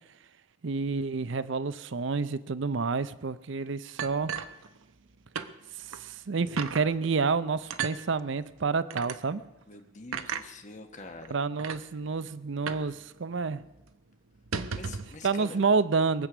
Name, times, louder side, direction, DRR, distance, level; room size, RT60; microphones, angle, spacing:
voice 1, 0.6-4.3 5.8-9.4 11.3-13.6 15.2-16.3, right 4 dB, 60° right, 15 dB, 0.5 m, -29 dB
sound 1, 4.0-5.1 5.3-5.5 5.9-6.0 6.6-6.9 7.7-8.0 8.9-9.2 10.1-10.5 11.2-11.3 11.6-11.8 12.7-12.9 13.2-13.3 13.6-13.8 14.3-15.1, right 6 dB, 80° right, 0.9 m, -34 dB
voice 2, 9.7-11.4 14.7-15.6, left 3 dB, 35° left, 5 dB, 1.1 m, -45 dB
22.5 x 8.3 x 6.1 m, 0.95 s
head